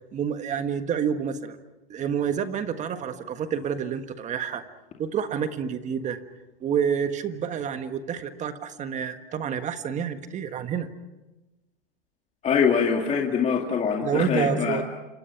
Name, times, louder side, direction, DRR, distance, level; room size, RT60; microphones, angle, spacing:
voice 1, 0.1-1.6 1.9-4.6 5.0-6.2 6.6-10.9 14.0-14.8, right 7 dB, 25° right, 9 dB, 1.5 m, -28 dB
voice 2, 12.4-14.8, left 6 dB, 25° left, 1 dB, 2.3 m, -23 dB
28.0 x 25.5 x 5.9 m, 1.1 s
hypercardioid pair, 135°, 29 cm